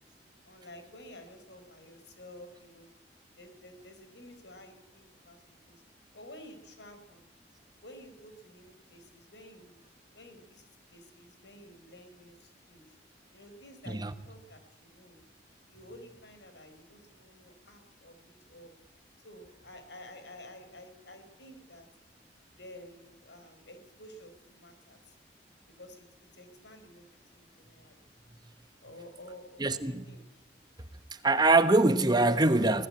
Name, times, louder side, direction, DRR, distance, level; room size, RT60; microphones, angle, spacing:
voice 1, 0.4-2.9 3.4-5.8 6.1-7.2 7.8-9.8 10.1-13.0 13.3-15.2 15.7-18.7 19.2-21.9 22.5-25.1 25.7-28.0 28.8-30.2, left 1 dB, 80° left, 4.7 m, -51 dB
voice 2, 29.6-30.0 31.1-32.9, right 2 dB, 25° right, 1.1 m, -24 dB
23.0 x 18.0 x 8.8 m
head